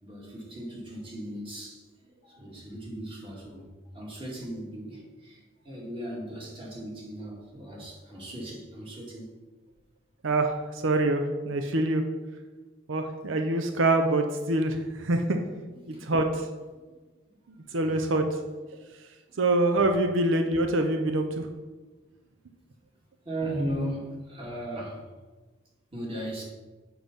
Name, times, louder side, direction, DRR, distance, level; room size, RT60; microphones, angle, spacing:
voice 1, 0.0-3.7 3.9-5.4 5.6-9.3 15.7-16.0 17.7-18.0 23.2-25.0 25.9-26.4, right 1 dB, 30° right, -3 dB, 2.2 m, -37 dB
voice 2, 10.8-12.0 12.9-15.4 15.9-16.5 17.7-18.2 19.4-21.5, right 2 dB, 85° right, 5 dB, 0.7 m, -25 dB
7.1 x 5.8 x 5.3 m, 1.3 s
head